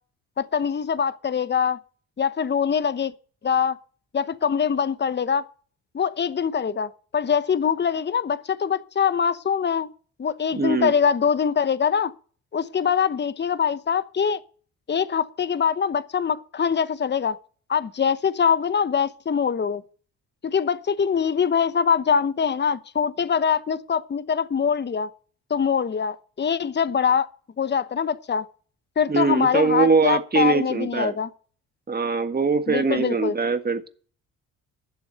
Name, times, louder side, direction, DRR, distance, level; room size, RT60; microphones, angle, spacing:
voice 1, 0.4-1.8 2.2-3.1 3.4-3.8 4.1-5.4 5.9-9.9 10.2-12.1 12.5-14.4 14.9-17.4 17.7-19.8 20.4-25.1 25.5-27.3 27.6-28.5 29.0-31.3 32.7-33.4, left 7 dB, 30° left, 0.9 m, -23 dB
voice 2, 10.5-10.9 29.1-31.1 31.9-33.9, right 4 dB, 25° right, 1.7 m, -22 dB
12.5 x 7.0 x 7.9 m
hypercardioid pair, 60°, 38 cm